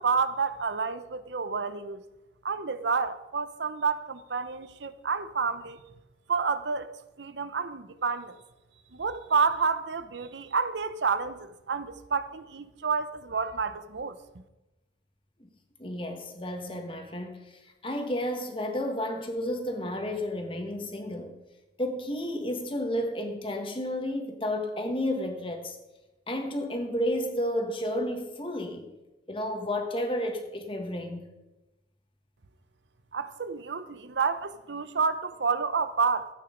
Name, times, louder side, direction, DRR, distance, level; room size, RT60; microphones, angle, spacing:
voice 1, 0.0-2.0 2.4-5.8 6.3-8.4 8.9-14.2 33.1-36.3, right 5 dB, 85° right, 0.8 m, -29 dB
voice 2, 15.8-21.4 21.8-25.8 26.3-28.9 29.3-31.3, left 1 dB, 30° left, 1.6 m, -32 dB
14.5 x 9.1 x 5.1 m
head